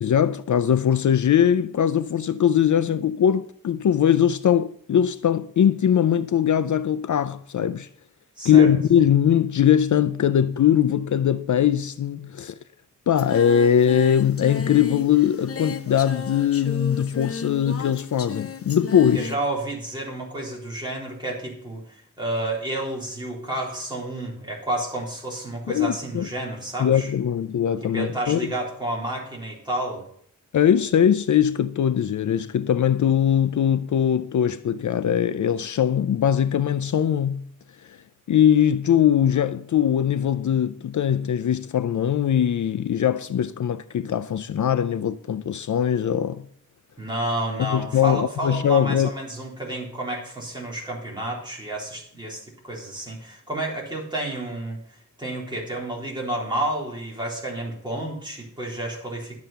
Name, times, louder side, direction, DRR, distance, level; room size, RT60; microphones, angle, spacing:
voice 1, 0.0-7.9 8.4-12.5 13.1-19.3 25.7-26.3 26.8-28.5 30.5-37.4 37.9-38.0 38.3-46.4 47.6-49.1, left 9 dB, 60° left, 0.5 m, -21 dB
voice 2, 8.4-8.7 19.1-27.1 27.9-30.0 47.0-54.8 55.2-59.4, right 1 dB, 15° right, 3.8 m, -30 dB
Singing, 13.2-19.4, left 5 dB, 45° left, 0.9 m, -35 dB
11.5 x 7.5 x 6.8 m
wide cardioid pair, 175°, 33 cm